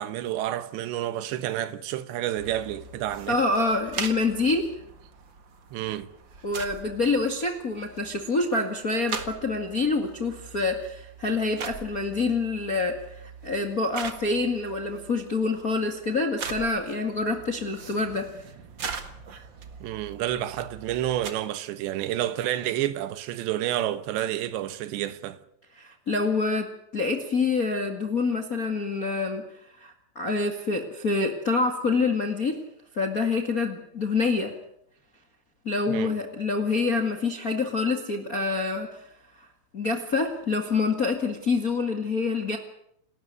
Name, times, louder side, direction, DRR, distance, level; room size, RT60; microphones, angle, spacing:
voice 1, 0.0-3.4 5.7-6.1 19.8-25.4 35.9-36.2, right 12 dB, 90° right, 3.4 m, -29 dB
sound 1, 2.4-21.3, right 6 dB, 55° right, 1.2 m, -41 dB
voice 2, 3.3-4.7 6.4-18.3 25.8-29.4 29.8-32.6 32.9-34.6 35.6-39.1 39.4-39.5 39.7-42.6, left 3 dB, 40° left, 1.3 m, -26 dB
28.5 x 13.0 x 9.6 m
omnidirectional pair, 4.9 m